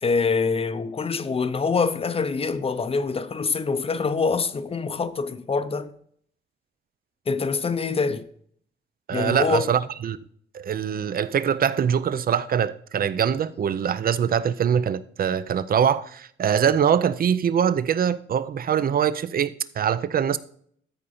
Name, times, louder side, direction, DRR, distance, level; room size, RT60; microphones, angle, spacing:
voice 1, 0.0-5.9 7.3-8.3 9.1-9.7, left 4 dB, 30° left, 0.6 m, -25 dB
voice 2, 9.1-10.2 10.5-20.4, right 8 dB, 45° right, 0.5 m, -23 dB
13.5 x 5.1 x 4.2 m
wide cardioid pair, 145°, 21 cm